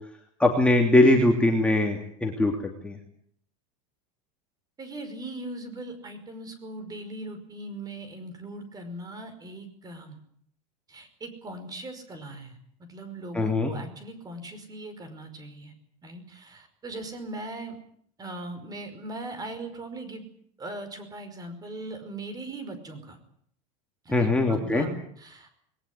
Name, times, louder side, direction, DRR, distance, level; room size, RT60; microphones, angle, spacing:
voice 1, 0.4-3.0 13.3-13.7 24.1-24.9, left 2 dB, 5° left, 1 dB, 2.8 m, -21 dB
voice 2, 4.8-10.2 10.9-15.7 16.0-17.8 18.2-20.3 20.6-23.2 24.1-25.5, right 2 dB, 20° right, 9 dB, 5.4 m, -39 dB
21.0 x 19.0 x 9.5 m, 0.65 s
supercardioid pair, 135°, 18 cm